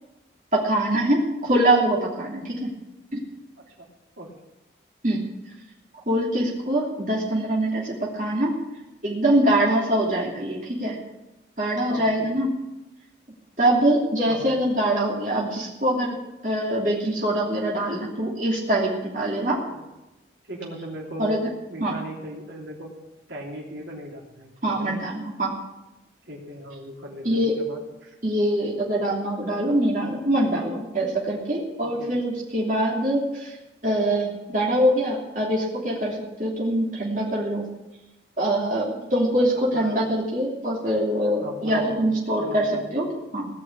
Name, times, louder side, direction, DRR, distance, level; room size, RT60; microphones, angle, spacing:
voice 1, 0.5-2.7 3.1-3.2 5.0-5.2 6.1-8.6 9.0-11.0 11.6-12.5 13.6-16.2 16.4-19.6 21.2-21.4 21.8-21.9 24.6-25.5 27.2-27.5 28.2-33.6 33.8-37.6 38.4-43.5, right 1 dB, 45° right, -4 dB, 3.0 m, -23 dB
voice 2, 11.9-12.4 14.3-14.6 19.7-19.9 20.5-21.4 21.7-22.9 23.3-25.0 26.3-28.1 31.8-32.2 39.7-40.0 41.4-43.0, right 1 dB, 85° right, -2 dB, 3.3 m, -37 dB
18.0 x 6.3 x 8.7 m, 1.0 s
head